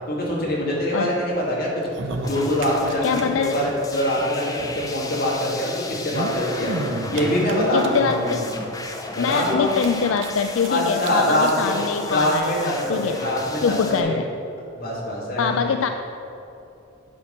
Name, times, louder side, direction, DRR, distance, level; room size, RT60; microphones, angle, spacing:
voice 1, 0.1-1.8 2.2-3.1 3.4-6.7 7.1-8.7 9.2-9.7 10.7-11.8 12.1-14.2 14.7-15.7, left 1 dB, 45° left, -4 dB, 2.2 m, -24 dB
sound 1, 1.8-3.2 3.5-3.6 3.8-3.9 4.9-5.0 5.9-8.2 8.8-8.9 9.2-9.3 9.7-10.7 11.0-11.1 11.4-11.6 12.4-12.5, right 2 dB, 65° right, 0.7 m, -31 dB
sound 2, 2.2-14.0, left 3 dB, 15° left, 0.6 m, -35 dB
voice 2, 3.0-3.6 7.7-8.4 9.2-13.2 13.6-14.3 15.4-15.9, left 6 dB, 70° left, 7 dB, 0.4 m, -24 dB
8.9 x 5.8 x 5.6 m, 2.8 s
head